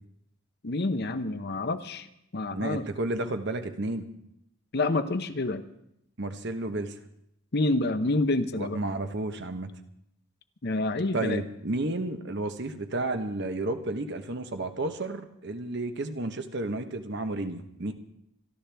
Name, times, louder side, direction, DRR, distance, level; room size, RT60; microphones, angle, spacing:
voice 1, 0.6-2.1 2.3-2.8 4.7-5.6 7.5-8.8 10.6-11.4, left 2 dB, 45° left, 10 dB, 0.8 m, -28 dB
voice 2, 2.5-4.1 6.2-7.0 8.6-9.7 11.1-17.9, right 2 dB, 50° right, 7 dB, 1.0 m, -32 dB
26.0 x 12.0 x 3.4 m, 0.76 s
head